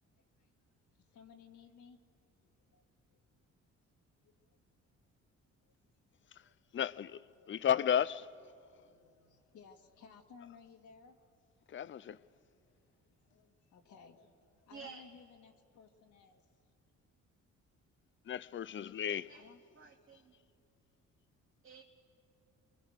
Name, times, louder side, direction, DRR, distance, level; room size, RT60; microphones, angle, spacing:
voice 1, 1.1-2.0 2.4-3.3 4.2-4.6 5.6-5.7 6.1-7.6 8.5-11.2 12.2-16.4 19.3-19.6, left 6 dB, 75° left, 2.1 m, -60 dB
voice 2, 6.7-7.2 7.5-8.3 11.7-12.2 18.3-19.3, left 9 dB, 40° left, 0.6 m, -33 dB
voice 3, 14.7-15.1 18.9-19.5 19.8-20.3 21.6-21.8, right 5 dB, 45° right, 1.8 m, -52 dB
28.5 x 23.0 x 6.5 m
cardioid pair, 90°, 30 cm